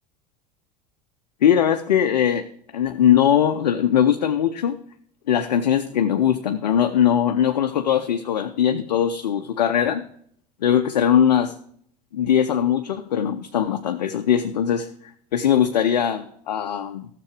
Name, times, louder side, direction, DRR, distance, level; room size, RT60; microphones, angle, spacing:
voice 1, 1.4-2.5 2.7-4.8 5.3-10.0 10.6-11.5 12.1-14.9 15.3-17.1, left 9 dB, 80° left, 7 dB, 0.6 m, -20 dB
13.0 x 6.9 x 4.8 m, 0.65 s
hypercardioid pair, 75°, 21 cm